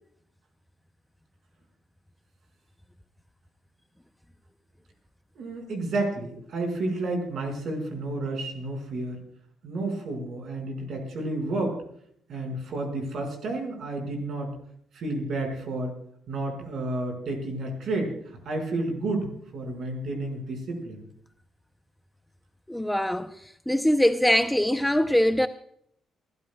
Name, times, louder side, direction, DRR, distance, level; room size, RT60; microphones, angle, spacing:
voice 1, 5.4-9.2 9.6-11.8 12.3-14.5 14.9-16.0 16.3-21.0, right 2 dB, 65° right, 5.4 m, -31 dB
voice 2, 22.7-23.3 23.7-25.5, left 1 dB, 5° left, 0.6 m, -22 dB
28.5 x 12.5 x 2.3 m
cardioid pair, 90°, 0 cm